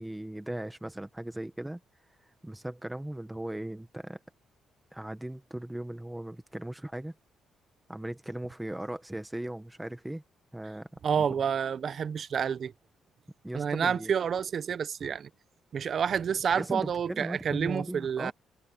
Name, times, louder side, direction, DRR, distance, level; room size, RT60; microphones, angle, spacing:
voice 1, 0.0-1.8 2.4-4.2 4.9-7.1 7.9-10.2 10.5-10.9 11.2-11.3 13.4-14.1 16.5-18.3, right 1 dB, 10° right, 1.7 m, -38 dB
voice 2, 11.0-12.7 13.5-15.3 15.7-18.3, right 7 dB, 55° right, 0.9 m, -29 dB
cardioid pair, 90°, 0 cm